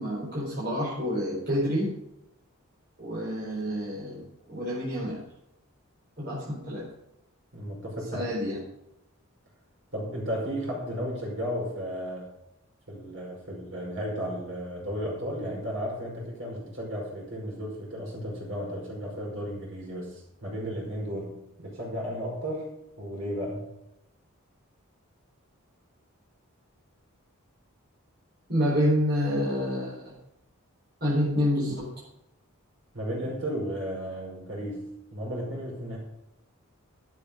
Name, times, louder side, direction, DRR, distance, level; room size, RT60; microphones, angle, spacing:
voice 1, 0.0-1.9 3.0-5.2 6.2-6.8 8.1-8.6 28.5-30.1 31.0-31.9, equal, 45° right, -6 dB, 4.5 m, -28 dB
voice 2, 7.5-8.3 9.9-12.3 12.9-21.3 21.6-22.7 23.0-23.6 32.9-36.0, equal, 65° right, -2 dB, 5.3 m, -34 dB
12.0 x 8.9 x 5.1 m, 0.87 s
head